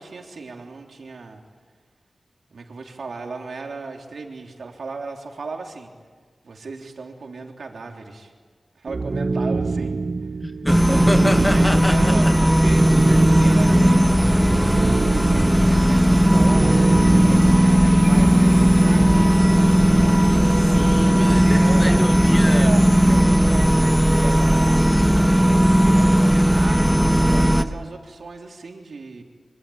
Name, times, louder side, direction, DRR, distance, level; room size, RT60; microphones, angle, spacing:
voice 1, 0.0-1.4 2.5-5.9 6.4-8.3 8.8-10.1 10.8-14.7 15.7-19.4 21.3-22.1 22.4-25.1 25.8-29.2, right 4 dB, 90° right, 2 dB, 3.5 m, -36 dB
sound 1, 8.9-18.1, right 3 dB, 45° right, 0.9 m, -26 dB
voice 2, 10.4-12.5 13.1-13.2 20.7-22.7, left 1 dB, 15° left, 8 dB, 1.4 m, -27 dB
sound 2, 10.7-27.6, equal, 5° right, 1.2 m, -16 dB
26.5 x 25.5 x 8.8 m, 1.5 s
wide cardioid pair, 110°, 0 cm